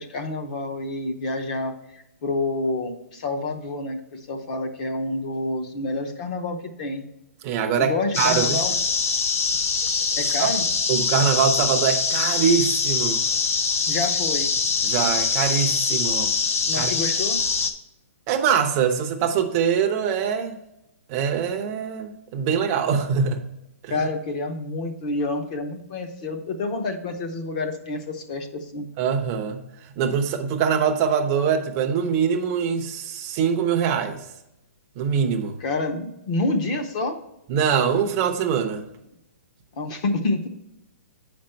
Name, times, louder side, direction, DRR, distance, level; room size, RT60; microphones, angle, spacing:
voice 1, 0.0-1.7 2.2-7.0 7.8-8.7 10.2-10.6 13.9-14.5 16.7-17.4 23.9-28.9 35.6-37.2 39.8-40.5, left 2 dB, 30° left, 6 dB, 0.8 m, -28 dB
voice 2, 7.4-8.6 10.4-10.5 10.9-13.2 14.8-16.3 16.8-16.9 18.3-20.6 21.1-23.4 23.8-24.1 29.0-34.2 35.0-35.6 37.5-38.9, right 7 dB, 20° right, 4 dB, 0.7 m, -23 dB
sound 1, 8.1-17.7, left 5 dB, 70° left, 0.9 m, -23 dB
8.1 x 5.2 x 4.4 m, 0.86 s
hypercardioid pair, 175°, 8 cm